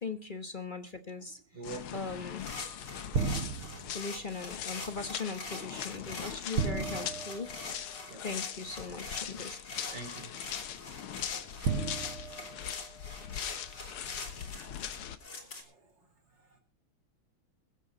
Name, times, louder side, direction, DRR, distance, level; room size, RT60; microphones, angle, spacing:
voice 1, 0.0-1.4 1.9-2.5 3.9-7.5 8.2-9.6, left 4 dB, 30° left, 8 dB, 1.0 m, -39 dB
voice 2, 1.5-2.0 2.5-2.8 8.0-8.3 9.8-10.4, right 2 dB, 60° right, 7 dB, 3.8 m, -44 dB
sound 1, 1.6-15.2, left 9 dB, 85° left, 2.0 m, -41 dB
sound 2, 2.4-15.6, left 3 dB, 55° left, 4.0 m, -45 dB
sound 3, 3.1-4.1 6.6-8.2 9.4-9.5 11.6-13.4, right 5 dB, 90° right, 2.4 m, -35 dB
21.5 x 10.0 x 3.9 m, 0.36 s
omnidirectional pair, 2.3 m